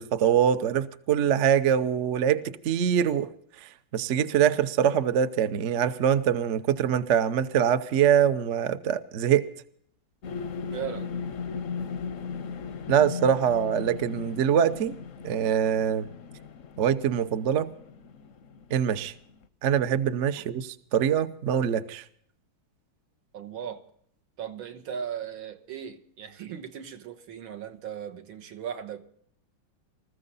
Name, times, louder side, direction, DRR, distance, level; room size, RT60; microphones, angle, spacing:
voice 1, 0.0-3.3 3.9-9.5 12.9-15.0 15.2-16.1 16.8-17.7 18.7-19.1 19.6-22.0, right 9 dB, 60° right, 0.8 m, -24 dB
sound 1, 10.2-19.4, left 6 dB, 60° left, 0.8 m, -37 dB
voice 2, 10.7-11.1 20.4-20.5 23.3-23.8 24.4-29.0, right 8 dB, 80° right, 2.0 m, -37 dB
20.5 x 14.5 x 4.0 m
omnidirectional pair, 2.2 m